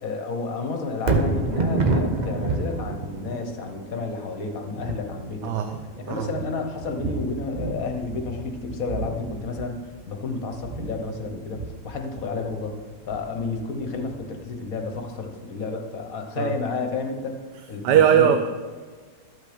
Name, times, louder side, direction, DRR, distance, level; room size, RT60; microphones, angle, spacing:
voice 1, 0.0-5.5 6.0-9.8 10.1-12.8 13.1-17.4 17.7-18.4, left 4 dB, 60° left, 4 dB, 1.4 m, -31 dB
Thunder, 0.9-15.2 15.6-15.7, right 3 dB, 40° right, 0.7 m, -30 dB
voice 2, 5.4-5.8 6.1-6.3 16.4-16.5 17.8-18.4, right 9 dB, 85° right, 7 dB, 1.2 m, -19 dB
12.5 x 6.0 x 5.1 m, 1.5 s
omnidirectional pair, 1.8 m